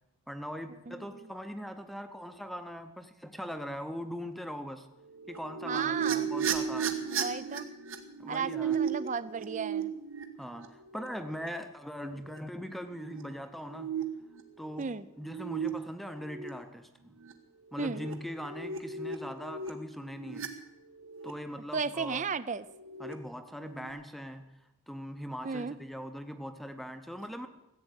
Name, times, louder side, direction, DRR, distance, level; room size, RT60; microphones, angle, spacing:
voice 1, 0.3-4.9 5.3-7.0 8.2-8.8 10.4-14.0 14.6-17.2 17.7-20.5 21.2-22.2 23.0-24.6 24.9-27.5, equal, ahead, 8 dB, 0.7 m, -41 dB
sound 1, 5.1-11.5 12.2-12.4 12.8-13.2 13.7-14.8 15.2-15.7 16.1-16.5 17.2-17.3 17.7-20.5 20.9-21.3 22.7-23.1 23.5-23.9, right 7 dB, 70° right, 1.4 m, -35 dB
voice 2, 5.7-6.3 7.1-7.7 8.3-9.9 12.0-12.2 14.8-15.0 17.8-18.1 21.7-22.6 25.4-25.7, right 5 dB, 35° right, 16 dB, 0.4 m, -34 dB
15.0 x 8.5 x 8.1 m, 0.94 s
head